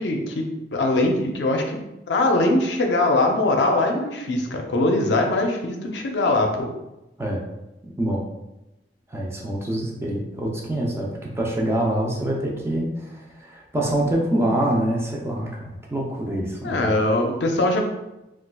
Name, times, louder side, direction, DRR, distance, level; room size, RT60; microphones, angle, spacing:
voice 1, 0.0-6.7 16.6-17.8, left 2 dB, 75° left, 2 dB, 0.5 m, -22 dB
voice 2, 7.8-8.2 9.1-16.9, right 1 dB, 15° right, -1 dB, 0.5 m, -25 dB
4.1 x 2.3 x 2.2 m, 0.96 s
head